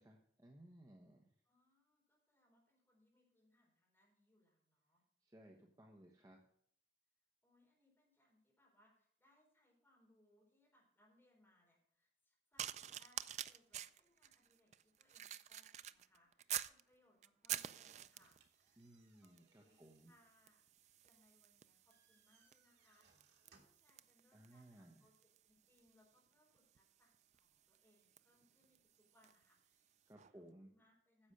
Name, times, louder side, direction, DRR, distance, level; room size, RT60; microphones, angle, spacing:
voice 1, 0.0-1.2 5.2-6.4 18.8-20.1 24.3-25.0 30.1-30.7, right 1 dB, 20° right, 1 dB, 1.0 m, -61 dB
voice 2, 1.4-5.0 7.4-18.8 19.2-30.0 30.3-31.3, left 1 dB, 10° left, -3 dB, 4.0 m, -75 dB
sound 1, 12.6-16.8 17.2-18.5 19.2-19.5 19.8-29.5 30.2-30.3, right 11 dB, 40° right, 0.3 m, -49 dB
sound 2, 18.1-24.0, right 4 dB, 85° right, 2.2 m, -75 dB
10.0 x 7.2 x 6.5 m, 0.66 s
head